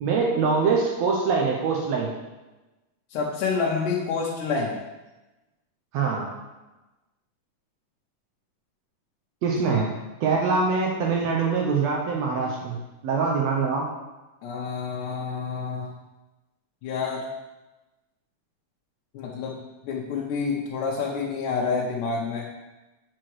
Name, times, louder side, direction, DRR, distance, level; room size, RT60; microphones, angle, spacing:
voice 1, 0.0-2.1 5.9-6.3 9.4-9.9 10.2-13.9, right 4 dB, 80° right, -1 dB, 1.6 m, -24 dB
voice 2, 3.1-4.8 9.7-9.8 14.4-16.0 16.8-17.3 19.1-22.4, left 5 dB, 85° left, -4 dB, 2.2 m, -28 dB
8.4 x 4.7 x 3.1 m, 1.1 s
omnidirectional pair, 3.7 m